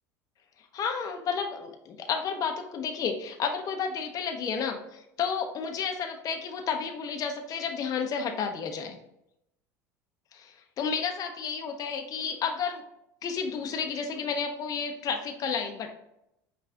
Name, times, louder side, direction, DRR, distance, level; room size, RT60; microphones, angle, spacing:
voice 1, 0.7-9.0 10.3-12.8 13.2-15.9, left 6 dB, 40° left, 3 dB, 0.6 m, -31 dB
5.5 x 2.4 x 3.6 m, 0.81 s
supercardioid pair, 95°, 9 cm